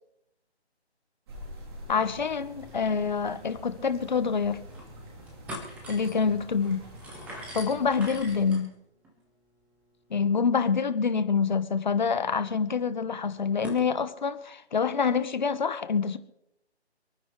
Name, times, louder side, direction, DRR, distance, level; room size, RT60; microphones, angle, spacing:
sound 1, 1.3-8.5, equal, 25° right, 3.4 m, -46 dB
voice 1, 1.9-4.6 5.9-6.8 7.5-8.7 10.1-16.2, left 5 dB, 45° left, 12 dB, 1.3 m, -26 dB
sound 2, 4.4-4.9 5.2-13.8, equal, 5° right, 1.6 m, -46 dB
28.5 x 9.7 x 3.3 m, 0.82 s
figure-of-eight pair, 160°, 33 cm